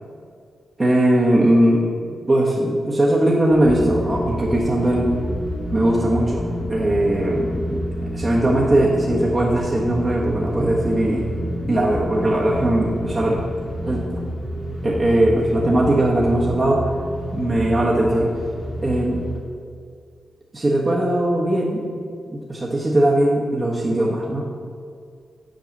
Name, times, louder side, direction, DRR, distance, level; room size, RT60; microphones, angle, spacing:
voice 1, 0.8-1.9 2.3-5.1 5.7-7.9 8.1-11.3 11.7-13.5 13.8-14.2 14.8-16.9 17.3-18.3 18.8-19.2 20.5-21.9 22.3-24.4, right 1 dB, 30° right, -4 dB, 1.3 m, -19 dB
sound 1, 3.5-19.4, equal, 55° left, 2.4 m, -29 dB
7.7 x 4.7 x 7.1 m, 2.2 s
cardioid pair, 60°, 0 cm